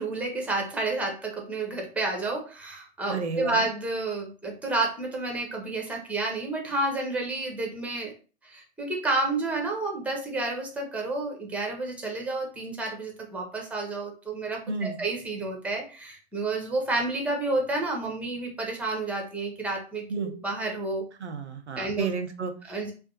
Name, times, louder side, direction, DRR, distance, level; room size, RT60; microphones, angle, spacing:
voice 1, 0.0-8.1 8.4-21.0 21.8-22.1 22.7-22.9, right 2 dB, 5° right, 1 dB, 0.6 m, -30 dB
voice 2, 3.1-3.7 14.7-15.0 20.1-20.3 21.2-22.5, right 4 dB, 85° right, 7 dB, 0.7 m, -31 dB
2.5 x 2.3 x 4.0 m, 0.37 s
figure-of-eight pair, 110°, 33 cm